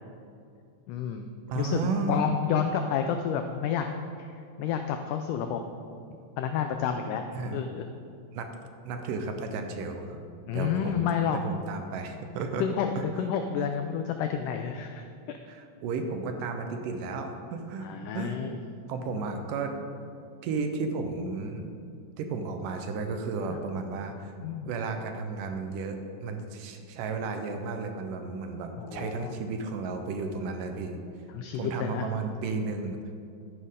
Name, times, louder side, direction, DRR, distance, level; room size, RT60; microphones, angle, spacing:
voice 1, 0.9-1.3 1.6-3.9 4.2-5.6 6.4-7.2 7.5-7.9 10.5-11.4 12.6-15.4 17.8-18.6 23.5-23.6 24.4-24.7 28.8-29.4 31.3-32.1, left 7 dB, 85° left, 6 dB, 1.8 m, -30 dB
voice 2, 1.5-2.2 7.3-7.6 8.3-8.5 8.9-10.2 10.5-12.7 12.9-13.0 13.6-13.7 15.5-18.4 18.9-19.8 20.4-21.6 22.2-24.3 24.7-31.0 31.5-33.1, right 4 dB, 75° right, 5 dB, 2.2 m, -33 dB
12.0 x 9.7 x 3.7 m, 2.5 s
omnidirectional pair, 4.2 m